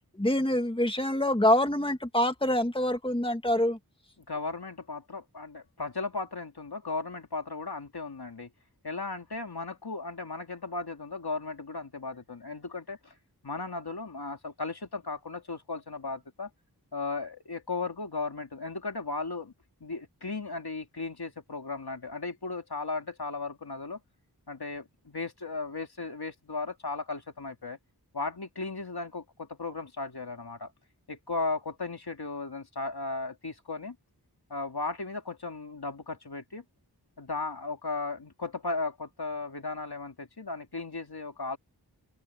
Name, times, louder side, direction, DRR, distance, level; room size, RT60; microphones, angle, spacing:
voice 1, 0.2-3.8, left 1 dB, 15° left, 2.1 m, -25 dB
voice 2, 4.3-8.5 8.8-13.1 13.4-16.5 16.9-19.5 19.8-24.0 24.5-27.8 28.1-30.7 31.1-34.0 34.5-36.6 37.2-41.6, left 3 dB, 70° left, 3.0 m, -36 dB
wide cardioid pair, 65°, 39 cm